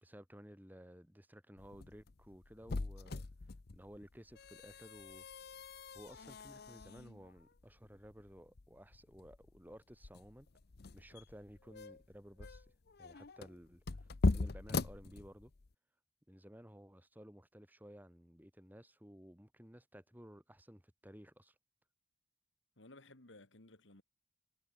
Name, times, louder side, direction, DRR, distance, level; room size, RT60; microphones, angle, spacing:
voice 1, 0.0-3.3 3.7-5.3 5.9-10.5 10.9-12.7 13.0-15.5 16.3-21.6, equal, 10° right, 3.8 m, -56 dB
sound 1, 1.6-15.7, left 3 dB, 55° left, 0.7 m, -41 dB
voice 2, 22.8-24.0, left 2 dB, 70° left, 2.8 m, -58 dB
head